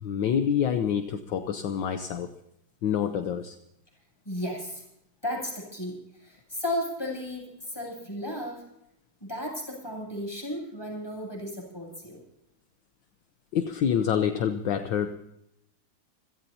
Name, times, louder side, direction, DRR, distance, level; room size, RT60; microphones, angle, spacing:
voice 1, 0.0-2.3 2.8-3.6 13.5-15.1, left 8 dB, 70° left, 8 dB, 1.5 m, -27 dB
voice 2, 4.2-4.8 5.2-6.0 6.2-8.6 9.2-12.2, left 1 dB, 10° left, -1 dB, 8.0 m, -34 dB
29.0 x 16.5 x 2.8 m, 0.80 s
omnidirectional pair, 2.3 m